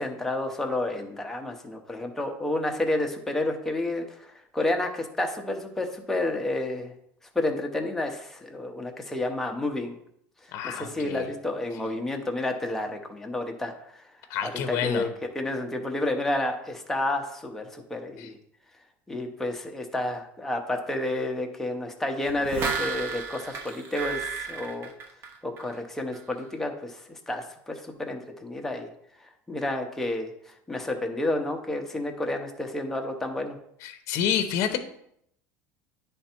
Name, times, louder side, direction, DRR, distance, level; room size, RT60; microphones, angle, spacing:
voice 1, 0.0-6.9 7.3-10.0 10.6-14.0 14.4-15.1 15.3-18.4 19.1-24.9 25.4-28.9 29.5-30.3 30.7-33.6, left 1 dB, 5° left, 2 dB, 0.8 m, -30 dB
voice 2, 10.5-11.3 14.3-15.1 18.2-18.3 33.8-34.8, left 9 dB, 50° left, 8 dB, 0.7 m, -28 dB
sound 1, 22.3-25.8 26.1-26.2, right 5 dB, 35° right, 1.0 m, -33 dB
9.9 x 3.4 x 4.4 m, 0.71 s
cardioid pair, 155°, 7 cm